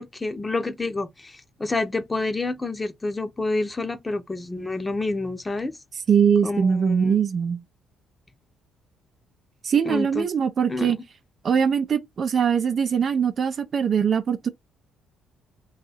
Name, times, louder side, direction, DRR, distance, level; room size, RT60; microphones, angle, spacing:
voice 1, 0.0-5.8 6.4-7.2 9.9-10.3 10.7-10.9, left 2 dB, 20° left, 0.7 m, -28 dB
voice 2, 6.1-7.6 9.6-11.0 11.4-14.5, right 7 dB, 50° right, 0.4 m, -22 dB
2.7 x 2.4 x 4.1 m
hypercardioid pair, 55°, 0 cm